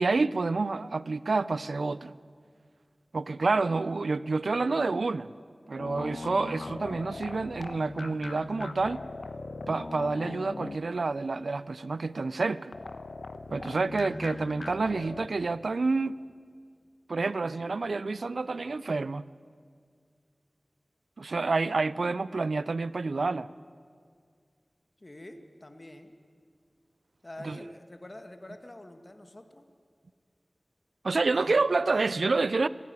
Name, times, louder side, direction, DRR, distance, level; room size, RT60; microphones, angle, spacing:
voice 1, 0.0-2.1 3.1-5.3 5.7-9.0 9.7-12.7 13.5-16.2 17.1-19.3 21.2-23.5 27.4-27.6 31.0-32.7, right 3 dB, 90° right, 0.4 m, -28 dB
sound 1, 5.8-11.1 12.7-15.3, left 2 dB, 80° left, 1.1 m, -40 dB
voice 2, 25.0-26.1 27.2-29.6 31.3-31.7, left 1 dB, 35° left, 1.7 m, -46 dB
17.5 x 16.0 x 9.6 m
wide cardioid pair, 60°, 0 cm